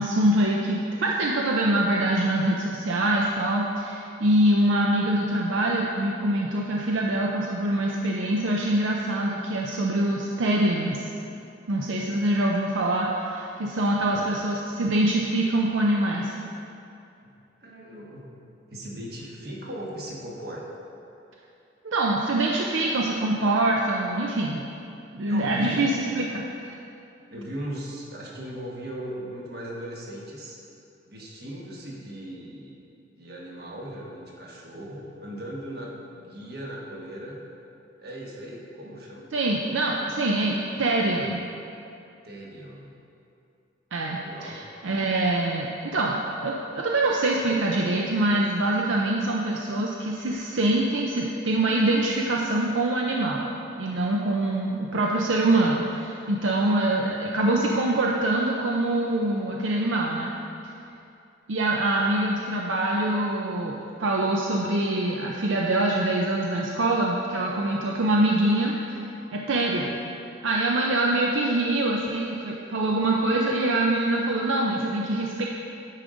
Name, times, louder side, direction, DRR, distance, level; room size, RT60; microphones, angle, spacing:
voice 1, 0.0-11.1 11.7-16.3 21.8-24.6 25.1-26.7 39.3-41.4 43.9-53.5 53.8-60.3 61.5-69.0 69.3-69.9 70.4-75.4, right 1 dB, 75° right, -1 dB, 0.5 m, -24 dB
voice 2, 13.9-14.4 17.2-18.4 18.7-20.7 25.3-25.9 27.3-30.6 31.0-32.8 33.1-37.4 38.0-39.3 42.2-43.0 44.2-44.6, right 1 dB, 50° right, -3 dB, 1.2 m, -38 dB
9.4 x 5.0 x 3.9 m, 2.7 s
head